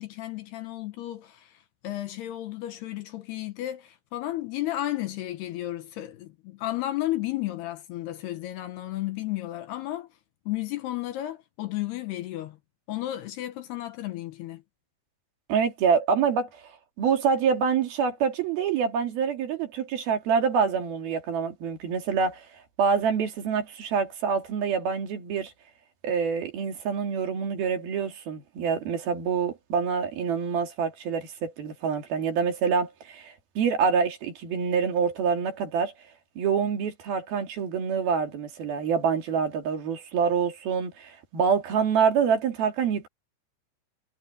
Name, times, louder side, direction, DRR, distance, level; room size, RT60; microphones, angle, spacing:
voice 1, 0.0-10.1 10.5-12.6 12.9-14.6, left 15 dB, 70° left, 2.7 m, -33 dB
voice 2, 15.5-16.7 17.0-22.5 22.8-25.5 26.0-35.9 36.4-43.1, right 6 dB, 55° right, 4.2 m, -26 dB
omnidirectional pair, 5.6 m